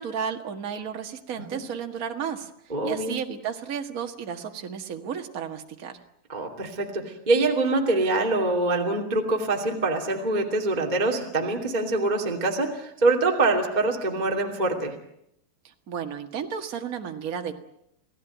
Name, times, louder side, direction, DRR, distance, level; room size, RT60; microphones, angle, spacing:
voice 1, 0.0-2.5 2.8-6.0 15.6-17.5, right 7 dB, 40° right, 4 dB, 1.3 m, -33 dB
voice 2, 2.7-3.2 6.3-14.9, right 2 dB, 15° right, 2 dB, 2.4 m, -24 dB
29.0 x 17.0 x 9.3 m, 0.77 s
omnidirectional pair, 4.2 m